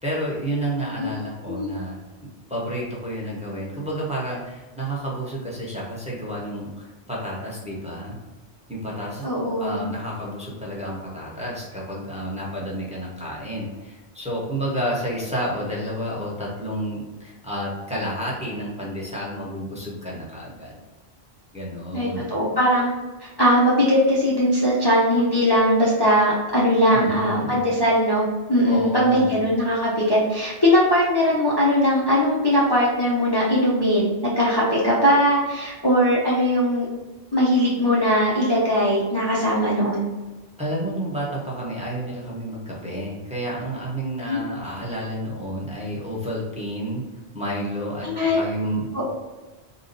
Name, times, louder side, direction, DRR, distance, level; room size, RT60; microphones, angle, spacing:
voice 1, 0.0-8.2 8.7-9.3 9.5-20.8 21.5-22.4 26.9-27.6 28.7-29.4 40.6-47.0 47.3-48.9, equal, 5° right, -4 dB, 0.9 m, -30 dB
voice 2, 9.2-9.8 21.9-22.9 23.2-36.9 37.3-40.1 44.3-44.4 48.0-48.4 48.9-49.1, equal, 25° left, -7 dB, 0.7 m, -20 dB
4.0 x 2.4 x 4.0 m, 1.2 s
omnidirectional pair, 1.1 m